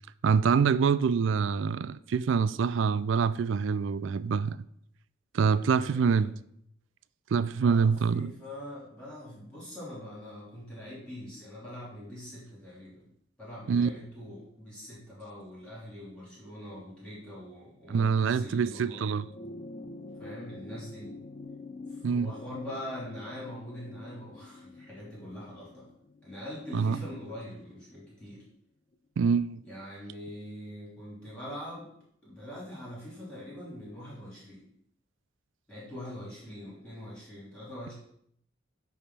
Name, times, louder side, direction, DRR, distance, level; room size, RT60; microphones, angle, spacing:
voice 1, 0.2-4.6 5.3-6.3 7.3-8.3 13.7-13.9 17.9-19.2 22.0-22.3 26.7-27.0 29.2-29.6, right 6 dB, 70° right, 0.3 m, -25 dB
voice 2, 5.5-6.3 7.6-13.1 13.4-19.1 20.2-21.1 21.9-25.9 26.2-28.4 29.7-31.9 32.2-34.7 35.7-37.9, left 1 dB, 5° left, 3.3 m, -43 dB
sound 1, 19.1-27.7 28.9-29.0, left 2 dB, 30° left, 0.4 m, -46 dB
9.3 x 3.5 x 5.7 m
head